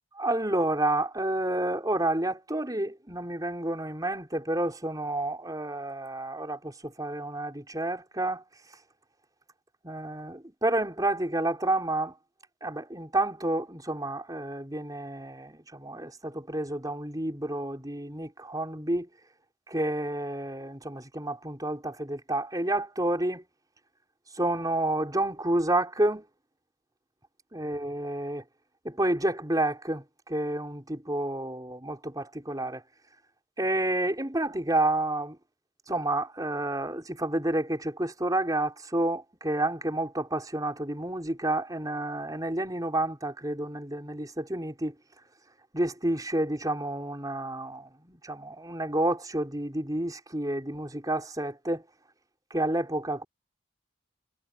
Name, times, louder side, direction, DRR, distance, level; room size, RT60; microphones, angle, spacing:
voice 1, 0.2-8.4 9.8-12.1 12.6-19.1 19.7-23.4 24.4-26.3 27.5-28.4 28.8-32.8 33.6-35.4 35.9-44.9 45.7-51.8 52.5-53.2, right 1 dB, 20° right, 5.3 m, -30 dB
head